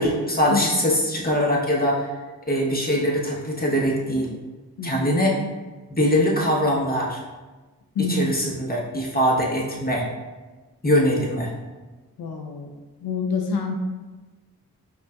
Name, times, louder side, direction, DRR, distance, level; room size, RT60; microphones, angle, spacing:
voice 1, 0.0-2.1 2.5-4.3 4.8-5.4 5.9-7.2 8.1-10.1 10.8-11.5, equal, 25° left, -3 dB, 0.9 m, -22 dB
voice 2, 4.8-5.2 8.0-8.4 12.2-12.7 13.0-13.7, left 4 dB, 85° left, 2 dB, 0.5 m, -27 dB
5.2 x 2.4 x 2.2 m, 1.3 s
cardioid pair, 45°, 37 cm